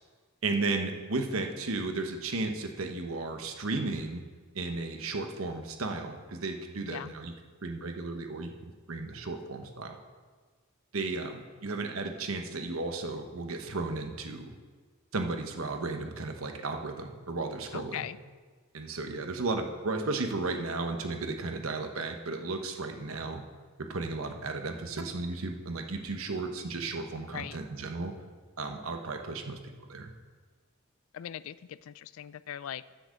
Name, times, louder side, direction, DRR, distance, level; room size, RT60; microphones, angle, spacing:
voice 1, 0.4-4.2 4.5-7.3 7.6-8.5 8.9-10.0 10.9-14.5 15.1-18.1 18.7-23.4 23.8-28.1 28.6-29.6 29.9-30.1, right 3 dB, 75° right, 5 dB, 1.0 m, -34 dB
voice 2, 6.8-7.1 17.7-18.2 27.2-27.6 31.1-32.8, left 10 dB, 75° left, 18 dB, 0.3 m, -40 dB
7.6 x 7.4 x 6.6 m, 1.5 s
head